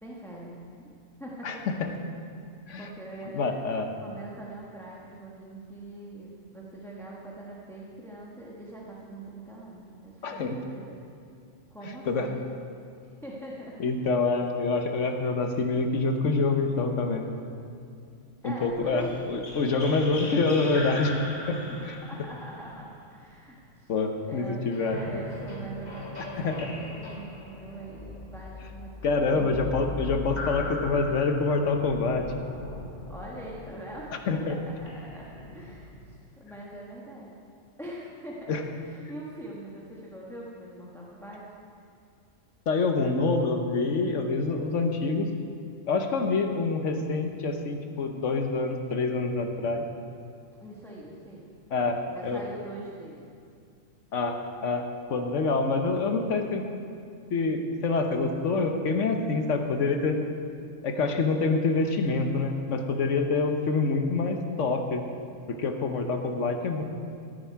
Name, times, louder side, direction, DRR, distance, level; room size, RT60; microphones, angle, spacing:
voice 1, 0.0-0.9 1.2-1.8 2.8-3.5 4.0-11.0 11.7-12.4 13.2-13.8 18.4-19.2 19.7-20.1 21.7-23.9 24.3-28.9 29.3-29.9 33.1-37.3 37.8-41.4 50.6-51.4 52.1-53.3, right 1 dB, ahead, -5 dB, 1.2 m, -43 dB
voice 2, 3.3-3.9 10.2-10.6 12.1-12.3 13.8-17.3 18.4-21.2 21.5-21.6 21.9-22.0 23.9-25.0 26.2-26.7 29.0-32.2 34.3-34.6 38.5-38.6 42.7-45.3 45.9-49.8 51.7-52.4 54.1-54.8 55.1-56.7 57.3-60.2 60.8-65.0 65.5-66.8, left 3 dB, 65° left, 5 dB, 1.2 m, -26 dB
sound 1, 18.6-23.7 24.7-36.2, left 2 dB, 35° left, 1.5 m, -39 dB
14.5 x 9.5 x 4.7 m, 2.4 s
omnidirectional pair, 1.4 m